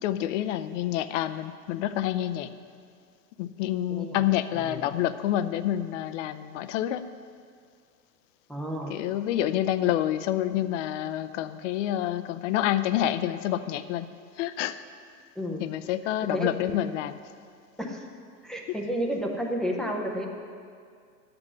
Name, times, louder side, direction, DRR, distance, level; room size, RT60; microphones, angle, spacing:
voice 1, 0.0-2.5 3.4-7.0 8.9-14.1 14.4-14.8 15.6-17.2 18.7-18.8, left 12 dB, 50° left, 12 dB, 0.6 m, -28 dB
voice 2, 3.9-4.2 4.5-4.8 8.5-8.9 15.4-15.6 16.3-16.9 17.8-18.1 18.4-20.3, equal, ahead, 0 dB, 0.5 m, -31 dB
10.5 x 7.8 x 6.2 m, 2.1 s
hypercardioid pair, 130°, 48 cm